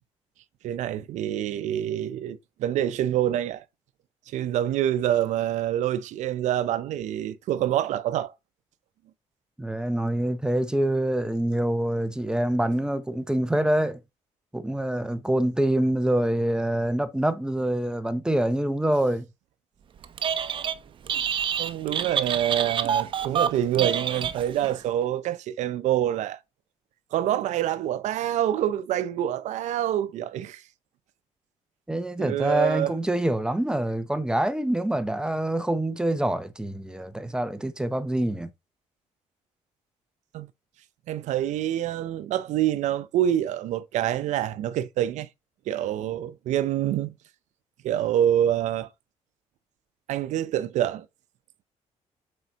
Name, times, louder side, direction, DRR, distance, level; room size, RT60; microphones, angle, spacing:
voice 1, 0.6-3.6 4.3-8.3 21.6-26.4 27.1-30.6 32.2-32.9 40.3-40.5 41.1-45.3 45.7-47.1 47.8-48.9 50.1-51.1, right 11 dB, 80° right, 0.6 m, -26 dB
voice 2, 9.6-14.0 14.5-19.3 31.9-38.5, right 1 dB, 5° right, 0.7 m, -25 dB
Telephone, 20.0-20.8 21.1-24.8, right 8 dB, 45° right, 0.7 m, -27 dB
7.7 x 5.3 x 2.9 m
cardioid pair, 140°, 12 cm